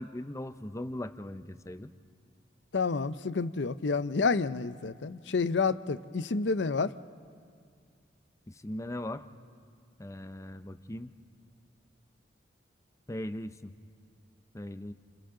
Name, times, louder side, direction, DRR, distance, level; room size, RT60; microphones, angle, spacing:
voice 1, 0.0-1.9 8.5-9.2 10.0-11.1 13.1-13.7 14.5-14.9, left 1 dB, 15° left, 0.7 m, -39 dB
voice 2, 2.7-6.9, left 4 dB, 80° left, 0.6 m, -29 dB
29.5 x 29.5 x 3.8 m
head